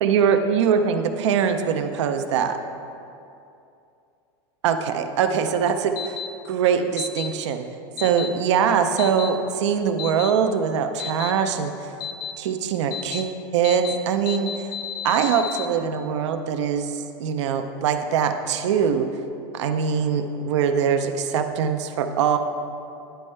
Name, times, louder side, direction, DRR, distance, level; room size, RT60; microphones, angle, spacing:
voice 1, 0.0-2.6 4.6-6.2 6.5-7.7 8.0-11.7 12.4-14.5 15.0-19.1 19.5-22.4, right 7 dB, 85° right, 7 dB, 0.5 m, -22 dB
sound 1, 6.0-6.3 7.0-7.3 8.0-8.3 9.0-9.3 10.0-10.3 11.0-11.3 12.0-12.3 12.9-13.2 13.6-14.0 14.3-15.7, left 9 dB, 30° left, 0.4 m, -31 dB
10.0 x 5.3 x 3.3 m, 2.6 s
supercardioid pair, 135°, 15 cm